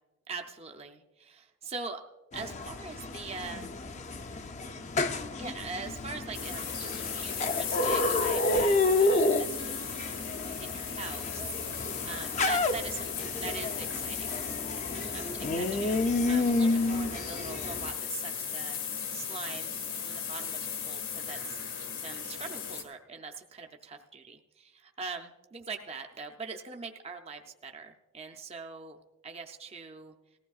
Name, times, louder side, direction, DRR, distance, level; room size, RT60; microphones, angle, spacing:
voice 1, 0.3-2.0 2.3-3.7 5.4-14.4 14.9-18.8 19.1-20.6 20.9-21.8 22.0-30.1, right 4 dB, 30° right, 4 dB, 0.5 m, -43 dB
sound 1, 2.3-17.9, left 2 dB, 35° left, 0.5 m, -30 dB
sound 2, 6.3-22.8, left 7 dB, 90° left, 1.7 m, -37 dB
19.0 x 15.0 x 2.4 m, 1.1 s
head